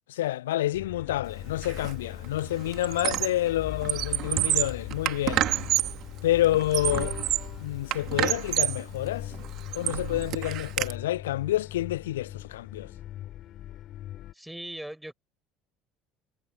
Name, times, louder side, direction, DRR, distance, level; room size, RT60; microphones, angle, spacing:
voice 1, 0.1-5.5 6.2-7.2 7.6-9.3 9.7-12.9, left 14 dB, 70° left, 0.4 m, -28 dB
sound 1, 0.7-14.3, left 13 dB, 50° left, 4.5 m, -40 dB
Squeak, 1.6-1.9 2.2-3.5 3.8-6.0 6.5-7.5 7.9-8.8 9.3-10.9, right 15 dB, 50° right, 1.8 m, -28 dB
voice 2, 14.3-15.1, right 1 dB, 5° right, 4.7 m, -39 dB
figure-of-eight pair, 60°, 0 cm